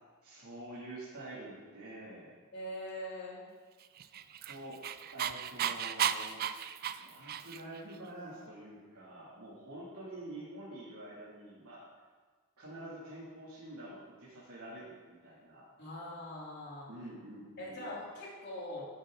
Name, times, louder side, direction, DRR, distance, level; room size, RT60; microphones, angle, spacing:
voice 1, 0.2-2.3 4.4-4.8 5.1-6.4 7.0-11.8 12.6-15.7 16.9-17.8, right 1 dB, 80° right, -9 dB, 2.7 m, -47 dB
voice 2, 2.5-3.4 15.8-16.9 17.6-18.9, left 1 dB, 50° left, -5 dB, 3.6 m, -42 dB
Dog, 4.0-7.8, right 9 dB, 45° right, 0.4 m, -34 dB
13.0 x 8.4 x 3.9 m, 1.4 s
head